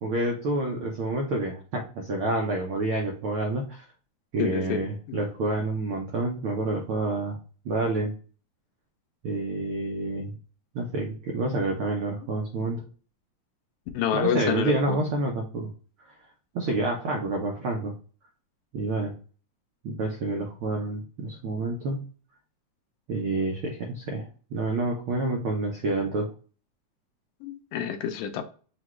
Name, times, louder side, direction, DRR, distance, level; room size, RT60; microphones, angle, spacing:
voice 1, 0.0-3.8 4.3-7.4 7.6-8.1 9.2-10.4 10.7-12.8 14.1-15.7 16.0-16.1 16.5-17.9 18.7-19.1 19.8-22.1 23.1-24.3 24.5-26.3, right 2 dB, 85° right, 1.1 m, -28 dB
voice 2, 4.4-5.2 13.9-15.0 27.4-28.4, left 8 dB, 80° left, 1.9 m, -28 dB
6.2 x 2.3 x 3.0 m
omnidirectional pair, 3.5 m